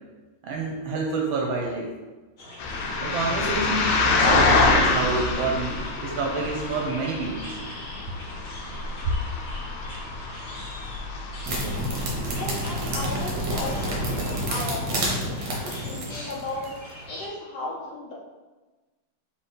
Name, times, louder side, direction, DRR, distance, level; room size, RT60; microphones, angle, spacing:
voice 1, 0.4-1.9 3.0-7.6, right 3 dB, 75° right, 0 dB, 1.3 m, -28 dB
sound 1, 2.4-17.3, equal, 45° left, 1.3 m, -43 dB
sound 2, 2.6-14.4, left 3 dB, 85° left, 1.5 m, -27 dB
sound 3, 11.4-16.8, equal, 55° right, 1.1 m, -29 dB
voice 2, 12.2-14.1 14.5-16.8 17.1-18.1, left 2 dB, 65° left, -3 dB, 1.1 m, -35 dB
4.3 x 3.4 x 3.2 m, 1.2 s
omnidirectional pair, 2.3 m